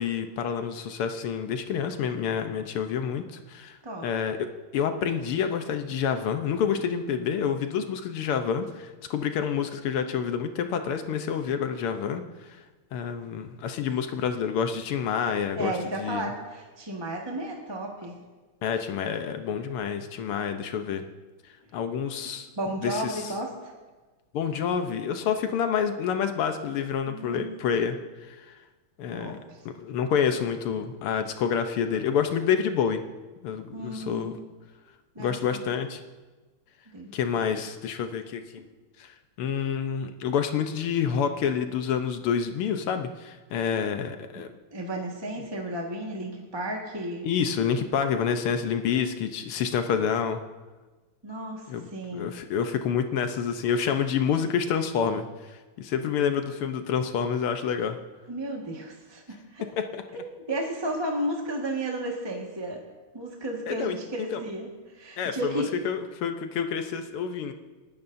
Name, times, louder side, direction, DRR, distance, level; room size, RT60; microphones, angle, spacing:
voice 1, 0.0-3.8 4.0-4.5 4.7-12.6 12.9-15.7 16.0-16.3 18.6-21.0 21.7-22.5 22.8-23.3 24.3-28.5 29.0-29.4 29.8-33.0 33.4-34.4 35.2-36.0 37.1-38.6 39.0-39.1 39.4-44.5 47.2-50.4 51.7-58.0 59.6-60.0 63.7-64.0 64.3-64.4 65.2-67.5, left 7 dB, 80° left, 7 dB, 1.8 m, -28 dB
voice 2, 15.5-18.1 22.6-23.7 27.1-27.5 29.1-29.6 33.7-34.4 35.1-35.6 36.9-37.5 44.3-44.4 44.7-47.3 51.2-51.7 51.9-52.3 58.3-59.6 60.1-62.8 63.1-65.7, right 1 dB, 15° right, -1 dB, 1.4 m, -33 dB
28.0 x 12.5 x 2.7 m, 1.3 s
omnidirectional pair, 2.4 m